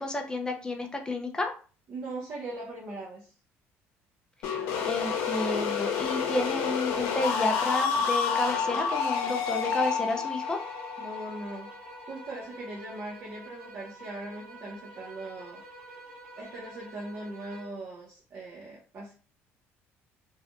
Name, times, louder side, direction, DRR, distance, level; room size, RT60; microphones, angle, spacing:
voice 1, 0.0-1.5 4.8-10.6, left 2 dB, 15° left, 3 dB, 0.5 m, -31 dB
voice 2, 1.9-3.4 11.0-11.7 12.1-15.6 16.4-19.1, right 2 dB, 45° right, -5 dB, 1.0 m, -40 dB
sound 1, 4.4-12.1, left 6 dB, 80° left, 0.7 m, -29 dB
sound 2, 10.4-17.9, right 1 dB, 85° right, 1.3 m, -48 dB
3.4 x 2.5 x 2.3 m, 0.37 s
cardioid pair, 120°, 5 cm